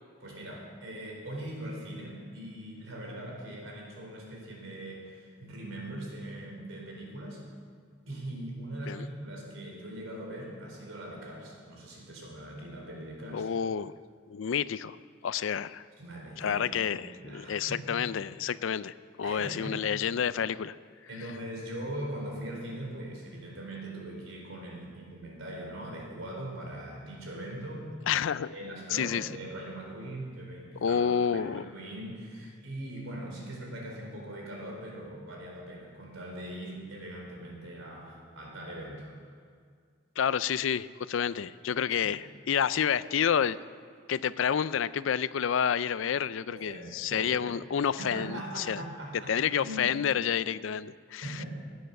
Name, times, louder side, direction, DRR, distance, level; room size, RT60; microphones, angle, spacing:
voice 1, 0.2-7.4 8.1-13.5 16.0-17.9 19.2-19.8 21.1-27.9 28.5-39.1 41.9-42.1 46.5-47.5 48.0-49.9 51.2-51.5, right 1 dB, 85° right, -1 dB, 4.2 m, -41 dB
voice 2, 13.3-13.9 14.3-15.0 15.2-15.8 16.4-17.0 17.3-20.8 28.1-28.5 28.9-29.3 30.8-31.7 40.2-43.6 44.1-48.8 49.3-51.2, left 8 dB, 75° left, 17 dB, 0.4 m, -29 dB
16.5 x 9.4 x 6.6 m, 2.1 s
head